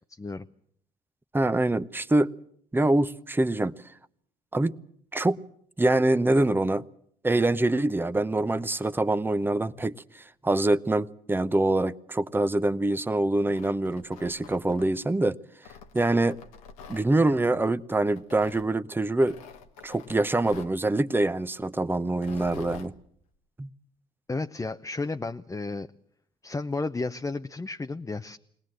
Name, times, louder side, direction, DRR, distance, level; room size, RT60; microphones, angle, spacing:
voice 1, 0.1-0.5 24.3-25.9 26.4-28.4, left 3 dB, 20° left, 0.8 m, -32 dB
voice 2, 1.3-2.3 2.7-3.7 4.5-4.7 5.1-5.4 5.8-6.8 7.2-15.4 15.9-16.4 16.9-19.4 19.8-22.9 23.6-23.7, right 2 dB, 10° right, 0.9 m, -25 dB
Tearing, 13.4-15.1 15.6-17.1 18.2-18.7 19.2-20.8 22.1-22.9, left 5 dB, 85° left, 1.3 m, -46 dB
21.5 x 19.0 x 7.7 m
hypercardioid pair, 50°, 18 cm